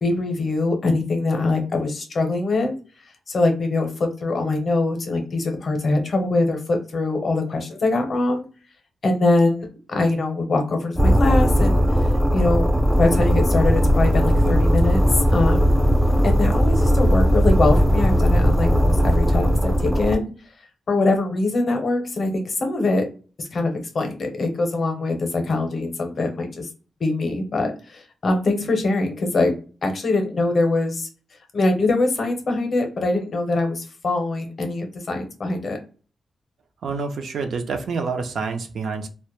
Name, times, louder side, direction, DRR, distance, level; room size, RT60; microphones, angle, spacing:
voice 1, 0.0-2.8 3.3-8.5 9.0-11.8 12.3-12.7 13.0-15.7 16.2-20.3 20.9-23.1 23.4-26.7 27.0-29.6 29.8-31.1 31.5-35.8, left 2 dB, 40° left, 4 dB, 0.6 m, -23 dB
sound 1, 11.0-20.2, equal, 5° right, 0.3 m, -18 dB
voice 2, 36.8-39.1, right 4 dB, 70° right, 5 dB, 0.4 m, -27 dB
2.1 x 2.0 x 2.9 m, 0.37 s
wide cardioid pair, 160°, 0 cm